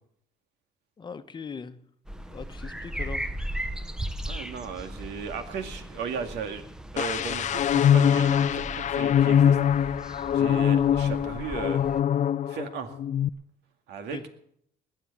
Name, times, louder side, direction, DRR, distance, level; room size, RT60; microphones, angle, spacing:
voice 1, 1.0-1.8 2.3-3.3 5.0-5.1 14.1-14.3, left 5 dB, 25° left, 1.0 m, -40 dB
sound 1, 2.1-12.0, right 1 dB, 5° right, 0.8 m, -38 dB
voice 2, 4.2-6.6 6.9-9.9 10.3-11.9 12.5-12.9 13.9-14.3, right 6 dB, 85° right, 2.2 m, -36 dB
sound 2, 7.0-12.7 13.0-13.3, left 9 dB, 45° left, 0.5 m, -23 dB
21.0 x 7.9 x 7.3 m
cardioid pair, 110°, 17 cm